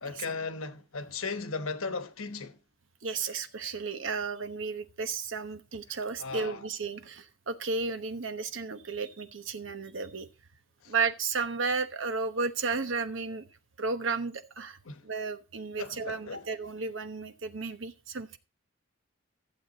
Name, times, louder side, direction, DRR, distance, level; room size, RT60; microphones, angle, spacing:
voice 1, 0.0-2.6 6.2-6.6 10.8-10.9 14.9-15.1 15.8-16.4, left 4 dB, 85° left, 1.2 m, -36 dB
voice 2, 3.0-10.3 10.9-13.4 13.8-14.8 15.0-18.4, right 4 dB, 65° right, 1.0 m, -33 dB
14.5 x 7.4 x 4.0 m
head